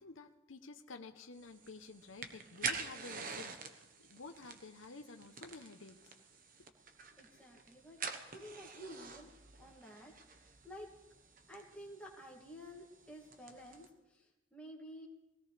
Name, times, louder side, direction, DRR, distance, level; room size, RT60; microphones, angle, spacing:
voice 1, 0.0-6.1, left 3 dB, 65° left, 6 dB, 0.8 m, -52 dB
sound 1, 1.4-13.9, right 5 dB, 40° right, 1.1 m, -47 dB
voice 2, 7.1-8.0 8.3-9.3 9.6-10.9 11.5-15.1, equal, 5° left, -2 dB, 2.3 m, -52 dB
22.5 x 17.0 x 3.4 m, 1.0 s
head